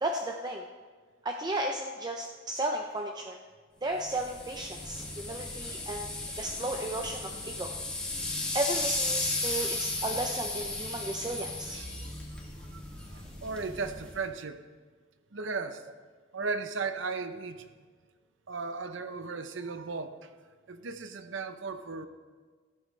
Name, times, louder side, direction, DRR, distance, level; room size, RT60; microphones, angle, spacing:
voice 1, 0.0-0.6 1.2-3.4 3.8-6.1 6.4-7.7 8.5-11.8, right 1 dB, 20° right, 2 dB, 0.6 m, -34 dB
sound 1, 4.0-14.3, left 2 dB, 5° left, 2.2 m, -35 dB
voice 2, 9.4-9.8 10.9-11.0 11.7-11.9 12.7-12.8 13.1-14.6 15.3-15.8 16.3-17.7 18.5-20.3 20.7-22.1, right 4 dB, 75° right, 9 dB, 0.8 m, -36 dB
15.0 x 13.5 x 3.3 m, 1.5 s
head